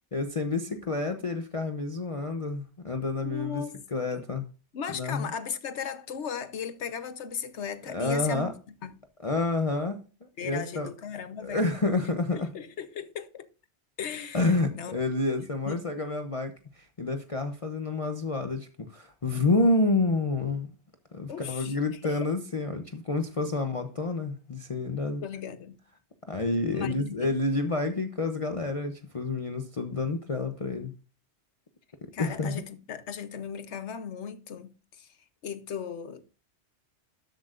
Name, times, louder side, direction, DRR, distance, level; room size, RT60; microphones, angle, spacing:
voice 1, 0.1-4.5 4.9-5.3 7.9-8.5 9.2-10.9 11.4-12.5 14.3-20.7 21.1-25.2 26.3-30.9 32.2-32.6, left 2 dB, 30° left, 0.8 m, -29 dB
voice 2, 3.2-4.2 4.7-8.5 8.8-8.9 10.4-12.1 12.3-13.5 14.0-15.0 15.6-15.9 21.3-21.8 22.1-22.3 25.2-25.8 26.7-27.3 32.1-35.1 35.4-36.2, left 7 dB, 75° left, 1.2 m, -37 dB
13.0 x 7.9 x 2.5 m
omnidirectional pair, 1.2 m